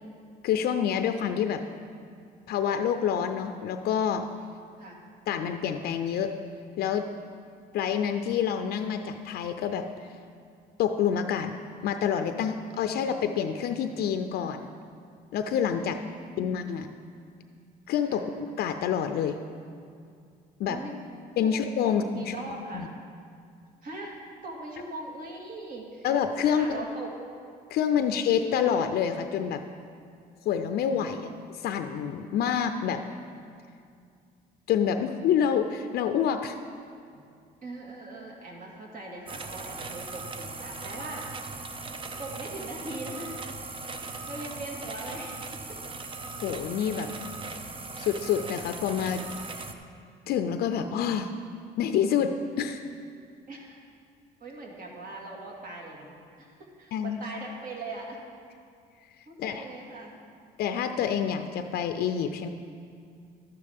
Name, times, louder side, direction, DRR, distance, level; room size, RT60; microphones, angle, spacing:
voice 1, 0.4-1.6 2.5-4.2 5.3-6.3 6.8-7.1 7.7-9.9 10.8-11.5 11.8-14.7 15.3-16.0 16.4-16.9 17.9-18.2 18.6-19.4 20.6-20.8 21.4-22.4 22.7-22.9 26.0-26.7 27.7-29.6 30.4-31.3 31.6-33.0 34.7-36.6 46.4-47.1 48.0-49.6 50.3-51.3 51.8-52.8 56.9-57.2 59.4-59.6 60.6-62.5, left 8 dB, 70° left, 8 dB, 0.5 m, -27 dB
voice 2, 15.8-16.5 18.1-18.2 20.6-21.0 21.4-21.5 21.8-22.9 23.8-24.2 24.4-26.1 26.4-27.2 27.9-28.1 30.9-31.2 37.1-37.2 37.6-41.7 42.2-43.3 44.3-45.8 53.5-53.8 54.4-56.1 56.4-58.2 59.3-60.1, right 2 dB, 55° right, -1 dB, 2.1 m, -40 dB
sound 1, 39.3-49.7, right 3 dB, 30° right, 0.7 m, -39 dB
12.0 x 9.9 x 3.5 m, 2.3 s
cardioid pair, 110°, 17 cm